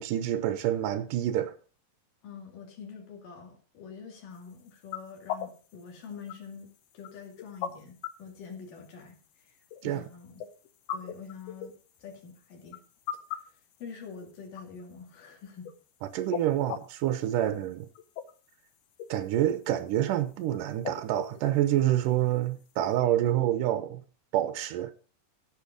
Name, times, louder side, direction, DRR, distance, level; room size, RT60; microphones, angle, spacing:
voice 1, 0.0-1.5 9.8-10.0 16.1-17.9 19.1-24.0 24.3-24.9, right 12 dB, 85° right, 1.9 m, -27 dB
voice 2, 2.2-6.7 6.9-9.2 9.8-10.4 10.9-11.7 12.0-12.8 13.8-15.7, left 6 dB, 55° left, 3.8 m, -45 dB
sound 1, 4.3-23.0, left 9 dB, 75° left, 2.8 m, -43 dB
15.5 x 5.9 x 5.2 m
omnidirectional pair, 4.8 m